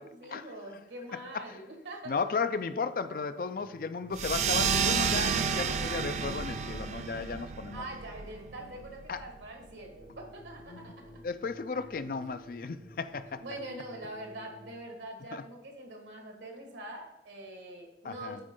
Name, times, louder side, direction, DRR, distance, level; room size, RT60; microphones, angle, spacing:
voice 1, 0.0-2.2 7.7-11.2 11.7-12.0 13.4-18.4, right 1 dB, 90° right, 2 dB, 1.6 m, -44 dB
voice 2, 2.1-7.8 9.1-9.2 10.7-10.9 11.2-13.4 15.3-15.4 18.0-18.4, left 5 dB, 50° left, 11 dB, 0.4 m, -34 dB
sound 1, 3.6-7.0 10.0-15.0, equal, 10° left, 2.3 m, -53 dB
sound 2, 4.1-9.2, right 6 dB, 40° right, 0.4 m, -31 dB
8.9 x 4.3 x 3.7 m, 0.91 s
head